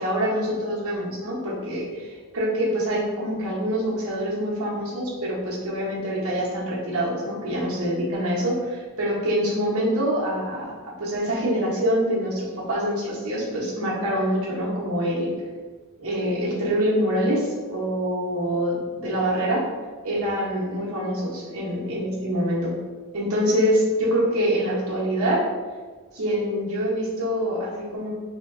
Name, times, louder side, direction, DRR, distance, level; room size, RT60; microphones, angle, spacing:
voice 1, 0.0-15.3 16.0-19.6 20.0-22.7 23.1-25.4 26.1-28.1, equal, 75° right, -6 dB, 1.0 m, -25 dB
3.1 x 2.8 x 2.6 m, 1.4 s
head